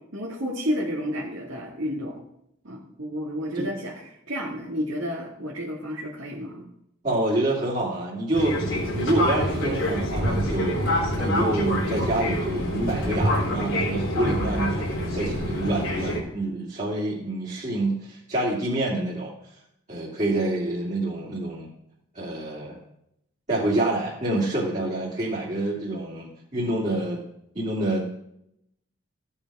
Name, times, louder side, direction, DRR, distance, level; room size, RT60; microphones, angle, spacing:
voice 1, 0.1-2.2 2.6-6.7, equal, 75° right, -5 dB, 2.3 m, -31 dB
voice 2, 7.0-8.6 8.9-10.8 11.1-19.3 19.9-21.7 22.1-22.8 23.5-27.2 27.5-28.1, right 2 dB, 35° right, -6 dB, 2.7 m, -27 dB
Fixed-wing aircraft airplane, 8.3-16.2, equal, 85° left, 3.6 m, -26 dB
15.0 x 9.0 x 4.9 m, 0.78 s
head